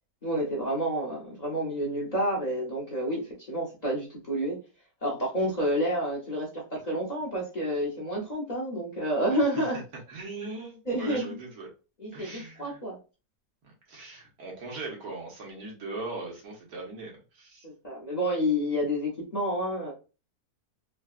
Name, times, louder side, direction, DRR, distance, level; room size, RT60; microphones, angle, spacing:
voice 1, 0.2-3.2 3.5-4.6 5.0-6.5 6.8-9.8 10.9-11.2 12.0-13.0 17.6-19.9, equal, 35° left, -4 dB, 0.8 m, -29 dB
voice 2, 9.3-9.7 10.1-11.7 12.1-12.8 13.6-17.7, right 3 dB, 80° right, -1 dB, 1.6 m, -40 dB
3.7 x 2.2 x 2.3 m, 0.32 s
omnidirectional pair, 1.6 m